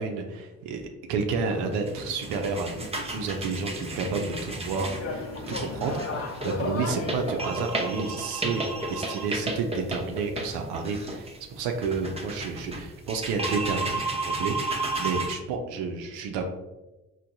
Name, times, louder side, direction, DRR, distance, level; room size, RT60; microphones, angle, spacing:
voice 1, 0.0-6.0 6.4-16.5, right 4 dB, 75° right, 4 dB, 0.5 m, -31 dB
sound 1, 1.4-7.3, left 3 dB, 35° left, 0.6 m, -36 dB
sound 2, 1.7-15.3, right 2 dB, 15° right, 0.6 m, -33 dB
4.5 x 2.1 x 2.6 m, 1.0 s
hypercardioid pair, 45°, 41 cm